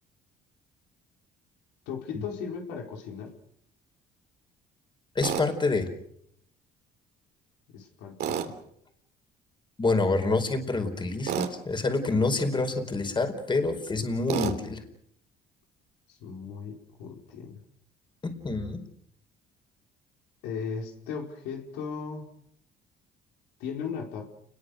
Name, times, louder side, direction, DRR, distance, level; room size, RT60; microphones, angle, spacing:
voice 1, 1.9-3.3 7.7-8.5 16.1-17.6 20.4-22.3 23.6-24.3, left 6 dB, 90° left, 1 dB, 4.9 m, -37 dB
voice 2, 5.1-5.9 9.8-14.8 18.4-18.8, left 3 dB, 25° left, 6 dB, 4.7 m, -27 dB
Tools, 5.2-5.5 8.2-8.5 11.3-11.5 14.3-14.6, right 9 dB, 70° right, 3.2 m, -29 dB
29.5 x 21.5 x 6.7 m, 0.73 s
cardioid pair, 100°, 17 cm